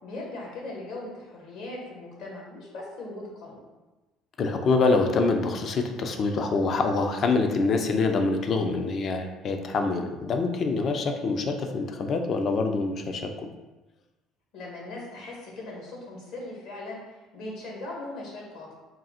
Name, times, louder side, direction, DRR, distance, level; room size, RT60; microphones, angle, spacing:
voice 1, 0.0-3.6 14.5-17.0 17.3-18.8, left 2 dB, 70° left, -3 dB, 1.5 m, -39 dB
voice 2, 4.4-13.5, left 3 dB, 50° left, 5 dB, 0.5 m, -25 dB
3.8 x 2.4 x 4.2 m, 1.1 s
supercardioid pair, 85°, 0 cm